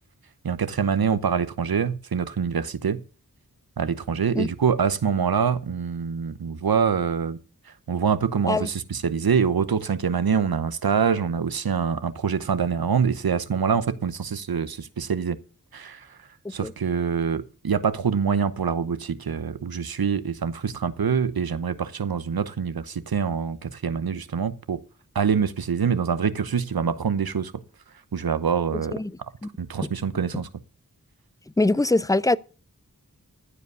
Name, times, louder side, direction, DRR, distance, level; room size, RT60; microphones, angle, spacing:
voice 1, 0.4-3.0 3.8-7.4 7.9-15.4 15.7-16.1 16.5-24.8 25.1-27.5 28.1-28.9 29.6-30.5, right 6 dB, 90° right, 0.9 m, -25 dB
voice 2, 31.6-32.4, left 2 dB, 10° left, 0.5 m, -22 dB
14.5 x 5.1 x 8.0 m
wide cardioid pair, 40°, 35 cm